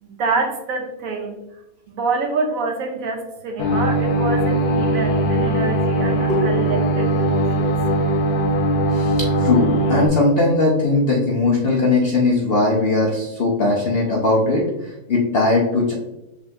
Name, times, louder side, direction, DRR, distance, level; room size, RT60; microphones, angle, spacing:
voice 1, 0.0-1.4 1.9-7.7, right 3 dB, 65° right, 3 dB, 1.0 m, -26 dB
sound 1, 3.6-10.1, right 1 dB, 75° left, 1.2 m, -20 dB
voice 2, 6.3-6.7 8.9-14.6 15.1-15.9, left 2 dB, 55° left, -2 dB, 0.7 m, -19 dB
5.1 x 3.3 x 2.7 m, 0.94 s
omnidirectional pair, 1.7 m